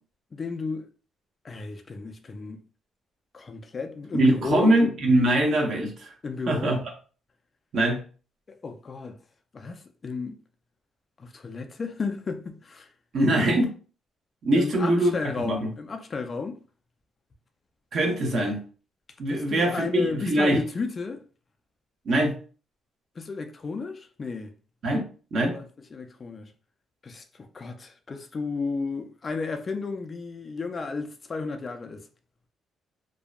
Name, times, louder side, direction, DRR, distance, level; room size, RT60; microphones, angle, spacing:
voice 1, 0.3-0.9 1.4-2.6 3.3-4.7 6.2-6.8 8.5-9.2 9.5-10.4 11.2-12.9 14.5-16.6 19.3-21.2 23.2-24.5 25.5-25.6 25.9-26.5 27.0-32.0, left 4 dB, 40° left, 0.4 m, -33 dB
voice 2, 4.1-6.1 6.5-6.8 7.7-8.0 13.1-13.7 14.4-15.1 15.4-15.7 17.9-18.6 19.2-20.6 22.0-22.4 24.8-25.0 25.3-25.5, right 1 dB, 60° right, 0.8 m, -22 dB
2.6 x 2.1 x 2.4 m
cardioid pair, 90°, 0 cm